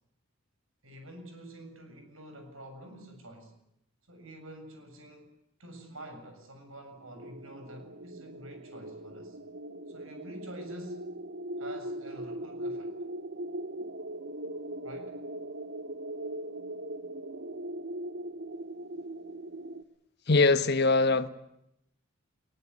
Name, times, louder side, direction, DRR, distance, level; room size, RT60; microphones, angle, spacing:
voice 1, 0.8-3.5 4.1-5.3 5.6-9.4 9.9-11.1 11.6-13.0 14.8-15.2, right 1 dB, 75° right, 6 dB, 7.4 m, -47 dB
sound 1, 7.1-19.8, right 1 dB, 60° right, 1.5 m, -40 dB
voice 2, 20.3-21.3, left 3 dB, 50° left, 12 dB, 1.3 m, -22 dB
21.5 x 21.0 x 9.6 m, 0.81 s
head